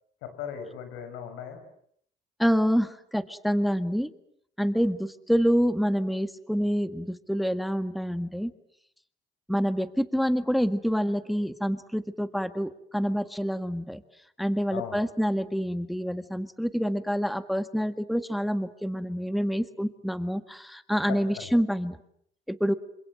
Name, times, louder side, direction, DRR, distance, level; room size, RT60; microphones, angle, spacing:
voice 1, 0.2-1.6 14.7-15.0 21.1-21.5, left 8 dB, 85° left, 8 dB, 6.3 m, -38 dB
voice 2, 2.4-4.1 4.6-8.5 9.5-14.0 14.4-22.0 22.5-22.7, equal, ahead, 11 dB, 1.7 m, -27 dB
28.0 x 26.0 x 7.7 m, 0.68 s
supercardioid pair, 60°, 20 cm